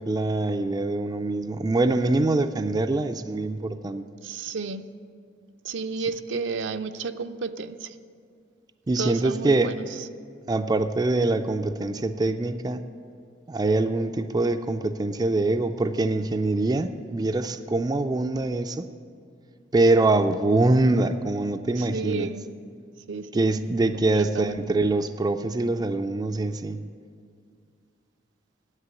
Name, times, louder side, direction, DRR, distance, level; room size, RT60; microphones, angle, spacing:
voice 1, 0.0-4.0 8.9-9.7 10.5-12.8 13.5-18.8 19.7-22.3 23.3-26.8, right 2 dB, 20° right, 8 dB, 0.3 m, -24 dB
voice 2, 4.2-4.8 5.6-8.0 9.0-9.9 21.8-22.5 23.1-23.4 23.9-24.6, right 4 dB, 70° right, 9 dB, 0.5 m, -32 dB
9.8 x 8.2 x 9.0 m, 2.2 s
head